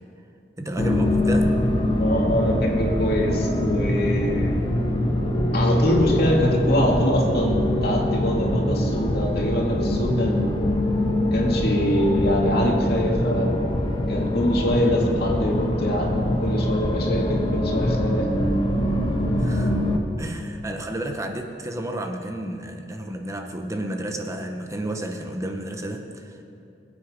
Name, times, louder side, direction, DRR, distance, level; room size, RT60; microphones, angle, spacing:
voice 1, 0.6-1.5 14.7-14.9 19.4-19.8 20.2-26.4, right 1 dB, 20° right, 4 dB, 0.8 m, -31 dB
sound 1, 0.8-20.0, left 1 dB, 30° left, 1.2 m, -23 dB
voice 2, 2.0-4.6 5.5-10.8 11.3-13.6 14.1-18.3, left 1 dB, 60° left, -1 dB, 2.4 m, -24 dB
22.0 x 8.7 x 5.1 m, 2.7 s
head